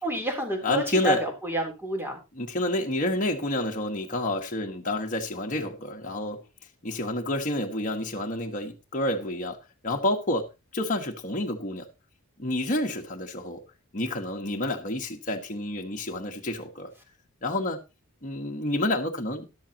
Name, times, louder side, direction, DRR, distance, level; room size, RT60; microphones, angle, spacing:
voice 1, 0.0-2.2, right 1 dB, 10° right, 3.4 m, -29 dB
voice 2, 0.6-1.2 2.4-6.4 6.8-9.6 9.8-10.4 10.7-11.9 12.4-13.6 13.9-16.9 17.4-17.8 18.2-19.4, left 1 dB, 35° left, 1.4 m, -29 dB
13.0 x 11.5 x 2.9 m
head